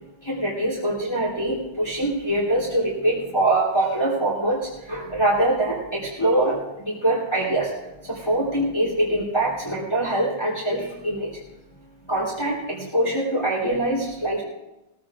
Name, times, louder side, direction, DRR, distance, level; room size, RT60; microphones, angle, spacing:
voice 1, 0.2-7.7 8.0-11.4 12.1-14.4, right 1 dB, 15° left, -5 dB, 3.5 m, -24 dB
22.0 x 15.0 x 2.5 m, 0.97 s
omnidirectional pair, 2.2 m